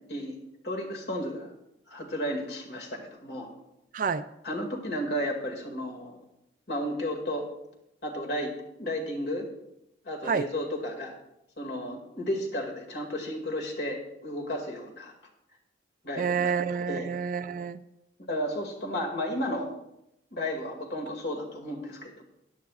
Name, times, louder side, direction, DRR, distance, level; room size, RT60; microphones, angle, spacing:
voice 1, 0.6-1.5 1.9-3.5 4.4-6.2 6.7-7.5 8.0-9.5 10.1-11.1 11.6-15.1 16.0-16.5 16.9-17.1 18.3-19.7 20.3-22.2, equal, 60° left, 1 dB, 2.2 m, -33 dB
voice 2, 3.9-4.2 10.2-10.5 16.2-17.8, right 6 dB, 45° right, 13 dB, 0.3 m, -28 dB
16.0 x 10.5 x 2.4 m, 0.83 s
head